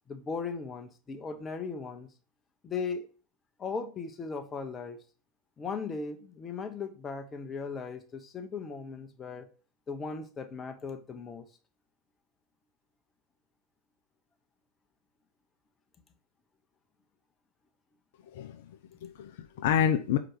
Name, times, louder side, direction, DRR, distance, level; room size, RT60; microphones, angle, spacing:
voice 1, 0.1-2.1 2.6-3.1 3.6-5.0 5.6-9.5 9.9-11.5, left 5 dB, 30° left, 1.1 m, -37 dB
voice 2, 18.3-20.2, left 9 dB, 65° left, 0.5 m, -29 dB
5.0 x 4.7 x 4.7 m
hypercardioid pair, 85°, 0 cm